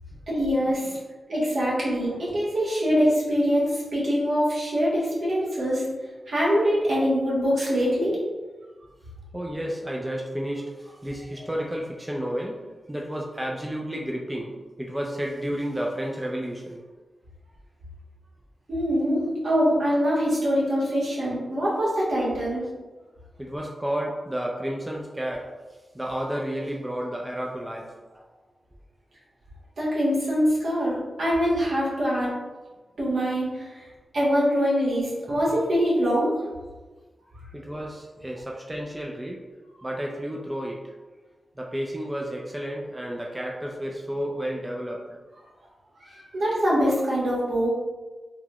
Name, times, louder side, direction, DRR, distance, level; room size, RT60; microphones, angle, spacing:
voice 1, 0.3-1.0 1.3-5.8 6.3-8.2 18.7-22.6 29.8-32.3 33.0-33.7 34.1-36.4 46.0-47.7, equal, 70° right, -7 dB, 1.4 m, -24 dB
voice 2, 9.3-16.8 23.4-25.5 25.9-28.0 37.5-39.4 39.8-40.9 41.6-45.2, equal, 15° right, -1 dB, 0.4 m, -31 dB
3.9 x 2.2 x 2.9 m, 1.3 s
cardioid pair, 70°, 0 cm